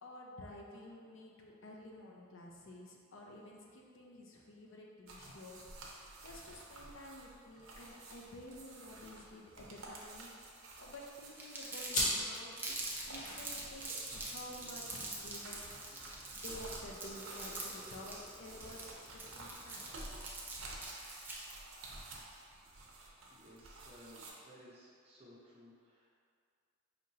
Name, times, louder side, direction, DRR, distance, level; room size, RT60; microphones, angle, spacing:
voice 1, 0.0-15.6 16.3-20.3, left 1 dB, 70° left, -1 dB, 0.6 m, -52 dB
sound 1, 5.1-24.3, right 2 dB, 85° right, 0.7 m, -51 dB
Crumpling crinkling, 11.4-21.6, right 2 dB, 10° right, 0.4 m, -45 dB
sound 2, 11.9-20.8, left 1 dB, 40° left, 0.9 m, -44 dB
voice 2, 23.3-26.1, equal, 30° right, -7 dB, 0.8 m, -58 dB
5.0 x 2.9 x 2.7 m, 2.2 s
head